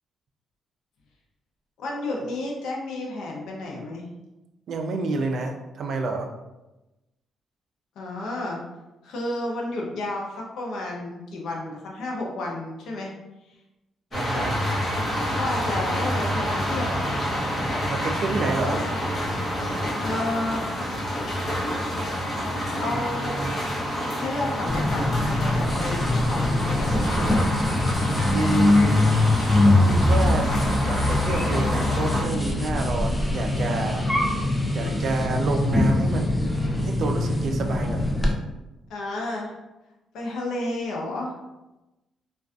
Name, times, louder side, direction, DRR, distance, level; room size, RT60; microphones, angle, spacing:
voice 1, 1.8-4.1 8.0-8.6 9.0-13.1 13.5-13.6 14.3-14.5 15.4-17.0 18.6-18.7 20.0-20.7 22.8-23.4 24.1-27.4 38.9-39.5 40.1-41.4, left 2 dB, 75° left, -1 dB, 0.5 m, -31 dB
voice 2, 4.7-6.3 14.1-14.5 17.9-18.8 28.3-29.2 29.8-30.5 30.8-34.0 34.7-36.4 36.8-38.0, right 3 dB, 60° right, 3 dB, 0.4 m, -28 dB
sound 1, 14.1-32.2, equal, 40° left, 0.9 m, -28 dB
sound 2, 24.7-38.3, left 2 dB, 10° left, 0.4 m, -23 dB
2.4 x 2.3 x 2.3 m, 1.0 s
cardioid pair, 90°, 0 cm